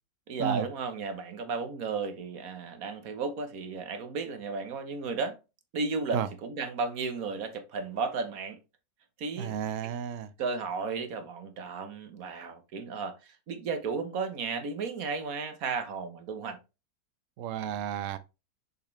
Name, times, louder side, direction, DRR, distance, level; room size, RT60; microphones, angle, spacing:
voice 1, 0.3-5.4 5.7-8.6 9.2-9.5 9.8-9.9 10.4-16.6, right 4 dB, 55° right, 1.4 m, -34 dB
voice 2, 9.4-10.3 17.4-18.2, right 9 dB, 75° right, 0.7 m, -32 dB
6.6 x 5.5 x 3.2 m
omnidirectional pair, 2.0 m